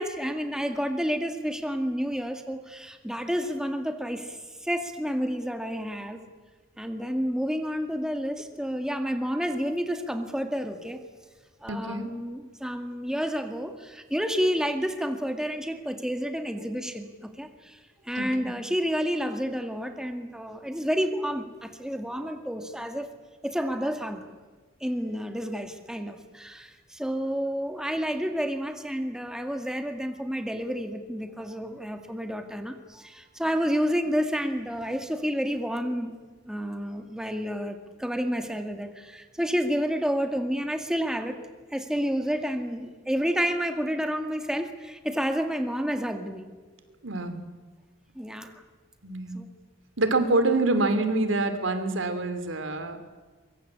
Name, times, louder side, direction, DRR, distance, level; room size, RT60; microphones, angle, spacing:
voice 1, 0.0-6.2 6.8-11.0 11.6-23.1 23.4-24.3 24.8-36.1 36.5-41.4 41.7-46.5 48.2-48.6 49.3-49.5, equal, 5° right, 6 dB, 2.0 m, -30 dB
voice 2, 11.7-12.1 18.2-18.5 47.0-47.4 49.0-49.4 50.0-53.0, right 2 dB, 80° right, 9 dB, 2.9 m, -26 dB
23.5 x 23.0 x 8.7 m, 1.4 s
head